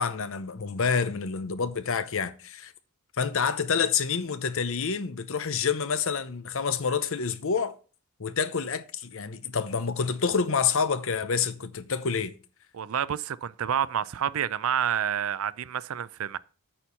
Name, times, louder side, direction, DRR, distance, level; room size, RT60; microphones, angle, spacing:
voice 1, 0.0-2.7 3.2-7.7 8.2-12.3, left 6 dB, 60° left, 0.7 m, -28 dB
voice 2, 12.7-16.4, right 9 dB, 65° right, 0.4 m, -29 dB
8.8 x 4.5 x 6.9 m
head